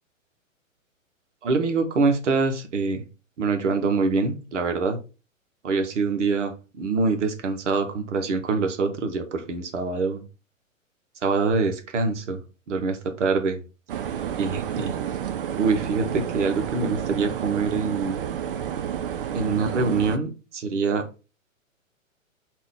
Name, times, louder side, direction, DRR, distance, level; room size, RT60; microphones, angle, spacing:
voice 1, 1.4-3.0 3.4-5.0 5.6-10.2 11.2-12.4 12.7-13.6 14.4-15.0 15.5-18.2 19.3-21.1, right 4 dB, 60° right, 0.9 m, -25 dB
sound 1, 13.9-20.2, right 9 dB, 45° right, 0.5 m, -30 dB
3.7 x 2.5 x 3.5 m
figure-of-eight pair, 115°, 41 cm